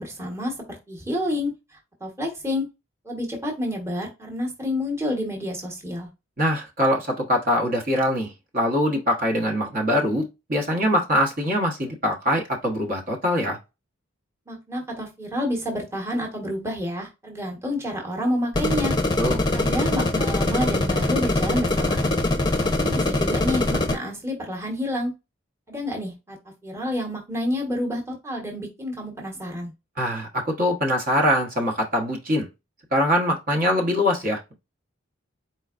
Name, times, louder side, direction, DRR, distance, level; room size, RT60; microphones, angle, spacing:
voice 1, 0.0-1.5 2.0-2.7 3.0-6.1 14.5-18.9 19.5-22.2 22.8-25.1 25.7-26.4 26.6-29.7, left 1 dB, 10° right, 1.2 m, -29 dB
voice 2, 6.4-13.6 19.2-19.4 30.0-32.4 32.9-34.5, equal, 40° right, 1.1 m, -23 dB
sound 1, 18.5-24.0, left 2 dB, 20° left, 0.7 m, -23 dB
4.5 x 3.9 x 2.5 m
head